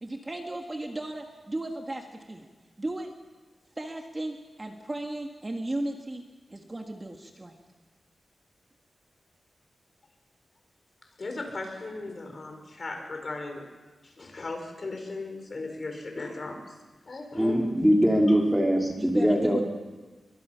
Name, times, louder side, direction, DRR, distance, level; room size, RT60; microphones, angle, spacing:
voice 1, 0.0-2.5 2.8-3.1 3.8-6.2 6.5-7.5 19.0-19.6, right 1 dB, 20° right, 3 dB, 1.6 m, -35 dB
voice 2, 11.2-13.6 14.0-16.6 17.1-17.7 18.3-18.4, left 2 dB, 40° left, 3 dB, 4.5 m, -37 dB
voice 3, 17.4-19.6, equal, 5° right, 0 dB, 2.9 m, -22 dB
26.5 x 23.0 x 5.7 m, 1.3 s
wide cardioid pair, 160°, 0 cm